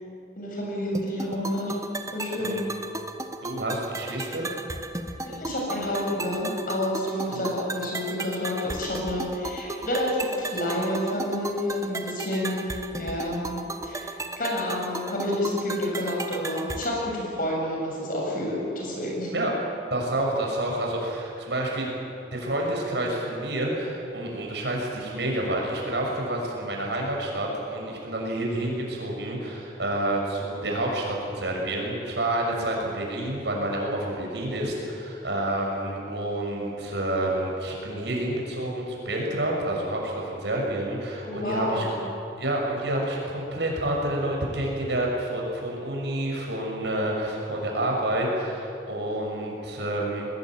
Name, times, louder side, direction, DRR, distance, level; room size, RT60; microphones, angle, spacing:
voice 1, 0.4-1.7 2.1-2.6 5.2-19.3 41.2-42.0, left 1 dB, 50° left, -2 dB, 7.5 m, -29 dB
sound 1, 0.9-16.9, right 2 dB, 15° right, 1.1 m, -35 dB
voice 2, 3.4-4.5 7.3-7.5 19.3-19.5 19.9-21.9 22.3-41.9 42.4-50.3, right 1 dB, 70° right, -1 dB, 6.5 m, -29 dB
22.0 x 20.5 x 9.1 m, 2.6 s
head